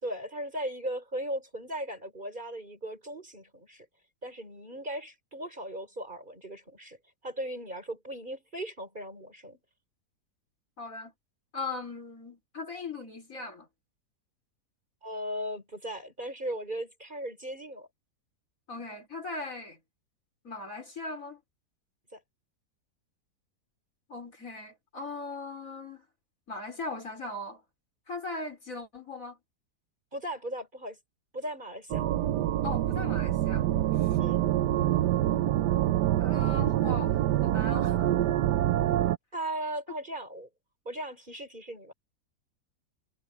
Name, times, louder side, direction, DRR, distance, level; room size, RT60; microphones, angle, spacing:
voice 1, 0.0-3.9 4.2-7.0 7.2-9.6 15.0-17.9 22.1-22.2 30.1-31.0 31.3-32.1 34.2-34.4 39.3-40.5 40.9-41.9, right 1 dB, 30° right, 5.2 m, -37 dB
voice 2, 10.8-11.1 11.5-13.7 18.7-19.8 20.4-21.4 24.1-26.0 26.5-27.6 28.1-29.4 32.6-33.7 34.0-34.1 36.2-38.1, left 3 dB, 55° left, 4.6 m, -39 dB
sound 1, 31.9-39.2, right 13 dB, 90° right, 1.3 m, -26 dB
omnidirectional pair, 1.7 m